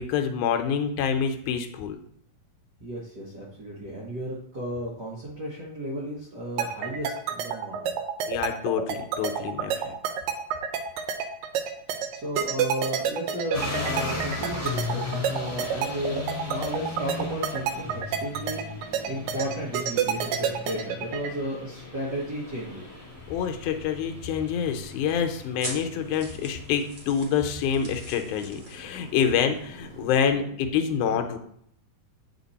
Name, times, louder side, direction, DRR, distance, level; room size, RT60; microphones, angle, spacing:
voice 1, 0.0-2.0 8.3-9.9 23.3-31.4, left 7 dB, 75° left, 6 dB, 2.0 m, -27 dB
voice 2, 2.8-8.0 12.1-18.6 19.1-22.9 28.2-31.4, equal, 60° right, -5 dB, 1.0 m, -34 dB
sound 1, 6.6-21.3, right 8 dB, 85° right, 2.4 m, -28 dB
sound 2, 13.5-30.1, left 3 dB, 10° left, 1.0 m, -38 dB
sound 3, 22.1-30.3, right 1 dB, 40° right, 1.5 m, -45 dB
8.4 x 4.4 x 4.1 m, 0.67 s
omnidirectional pair, 3.8 m